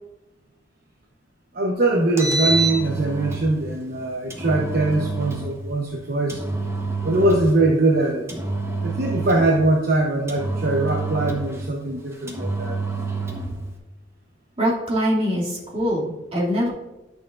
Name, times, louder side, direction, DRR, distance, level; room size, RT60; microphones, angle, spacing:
voice 1, 1.5-6.4 7.0-8.3 8.8-12.8, right 2 dB, 55° right, -1 dB, 1.0 m, -22 dB
Engine, 2.0-3.5 4.3-5.5 6.3-7.6 8.3-9.6 10.3-11.6 12.3-13.5, right 3 dB, 15° right, 1.0 m, -27 dB
voice 2, 14.6-16.7, equal, 35° right, -5 dB, 2.5 m, -23 dB
11.0 x 6.5 x 2.5 m, 1.1 s
head